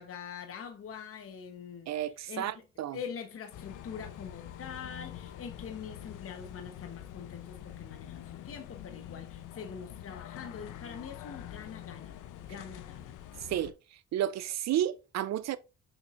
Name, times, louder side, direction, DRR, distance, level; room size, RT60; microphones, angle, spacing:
voice 1, 0.0-2.0 2.3-2.5 2.9-12.2 12.4-13.2, left 7 dB, 45° left, 1.1 m, -44 dB
voice 2, 1.9-3.0 13.4-13.7 14.1-15.6, right 11 dB, 60° right, 0.5 m, -32 dB
sound 1, 3.5-13.7, left 11 dB, 85° left, 0.8 m, -45 dB
6.8 x 6.2 x 2.5 m
cardioid pair, 90°, 30 cm